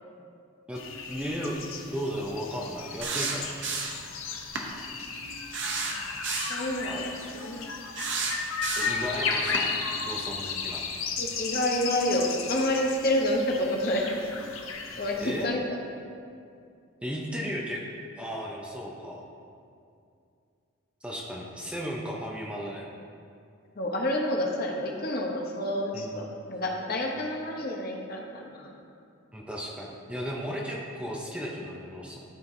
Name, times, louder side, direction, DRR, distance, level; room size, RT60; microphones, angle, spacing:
sound 1, 0.7-15.4, left 5 dB, 75° left, 0.7 m, -35 dB
voice 1, 1.1-3.5 6.8-7.1 8.7-9.7 10.0-10.8 15.2-15.6 17.0-17.8 18.2-19.2 21.0-22.9 25.9-26.5 29.3-32.2, equal, 5° right, -3 dB, 0.6 m, -35 dB
sound 2, 3.0-4.1 4.5-4.7 5.5-6.6 7.9-9.1 9.5-9.7, right 4 dB, 60° right, 0.7 m, -31 dB
voice 2, 6.5-7.8 8.9-9.1 11.2-14.1 15.0-15.8 23.7-28.7, left 1 dB, 45° left, 0 dB, 0.8 m, -29 dB
13.0 x 4.5 x 2.6 m, 2.4 s
head